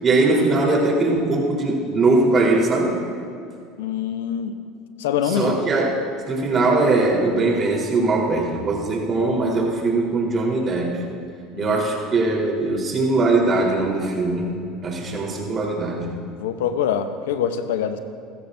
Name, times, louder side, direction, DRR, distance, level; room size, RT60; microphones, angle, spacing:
voice 1, 0.0-3.0 5.2-6.0 6.3-11.0 11.6-14.5 14.8-16.1, right 2 dB, 35° right, -2 dB, 4.0 m, -21 dB
voice 2, 3.8-4.5 5.0-5.6 11.5-11.8 16.4-18.0, left 8 dB, 85° left, 9 dB, 0.9 m, -24 dB
27.0 x 14.5 x 2.7 m, 2.4 s
supercardioid pair, 95°, 0 cm